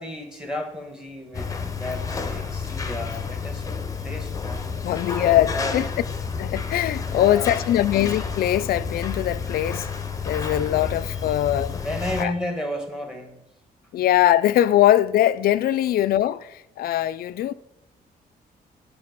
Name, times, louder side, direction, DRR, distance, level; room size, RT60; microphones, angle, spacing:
voice 1, 0.0-3.7 4.0-4.8 5.2-5.8 7.0-7.8 11.1-11.2 11.7-13.4, left 1 dB, 5° right, 1.3 m, -33 dB
sound 1, 1.3-12.3, left 5 dB, 20° left, 0.8 m, -30 dB
voice 2, 4.8-5.9 6.4-9.9 10.2-11.8 12.2-12.3 13.9-17.5, left 12 dB, 65° left, 0.4 m, -21 dB
11.0 x 5.0 x 5.2 m
cardioid pair, 155°, 17 cm